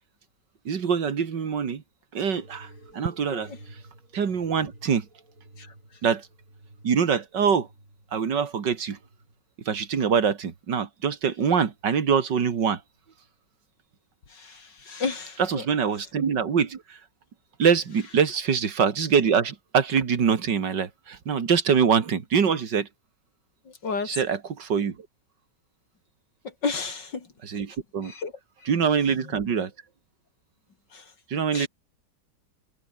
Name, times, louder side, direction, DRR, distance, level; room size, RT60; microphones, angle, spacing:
voice 1, 0.7-1.8 2.1-2.7 2.9-3.5 4.1-5.0 6.0-6.2 6.8-7.7 8.1-9.0 9.7-12.8 15.4-16.8 17.6-22.9 24.1-24.9 27.4-28.1 28.7-29.7 31.3-31.7, right 6 dB, 75° right, 2.7 m, -24 dB
sound 1, 2.2-9.4 9.9-10.7 11.5-12.0 13.0-13.1, right 2 dB, 45° right, 7.9 m, -52 dB
voice 2, 14.3-15.7 23.8-24.1 26.6-27.3 28.0-28.3 30.9-31.0 31.5-31.7, left 4 dB, 75° left, 3.7 m, -32 dB
omnidirectional pair, 1.9 m